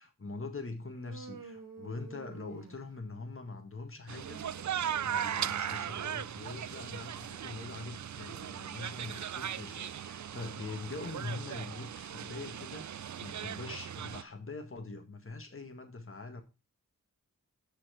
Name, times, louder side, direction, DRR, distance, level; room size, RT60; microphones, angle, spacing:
voice 1, 0.0-4.4 4.9-16.4, left 3 dB, 40° left, 1.6 m, -43 dB
Human voice, 0.9-3.2 4.1-5.9, right 4 dB, 85° right, 1.5 m, -51 dB
sound 1, 4.1-14.2, right 9 dB, 60° right, 0.5 m, -38 dB
6.9 x 5.8 x 5.6 m
wide cardioid pair, 55°, 33 cm